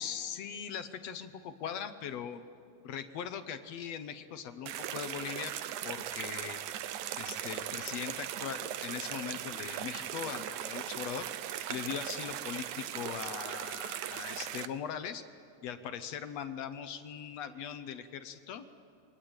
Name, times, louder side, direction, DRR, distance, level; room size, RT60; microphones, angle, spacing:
voice 1, 0.0-2.4 2.8-5.6 5.8-6.6 7.2-11.3 11.7-15.2 15.6-18.7, left 8 dB, 65° left, 10 dB, 1.7 m, -40 dB
sound 1, 4.7-14.7, right 11 dB, 70° right, 2.1 m, -39 dB
27.5 x 23.5 x 8.9 m, 2.6 s
omnidirectional pair, 3.9 m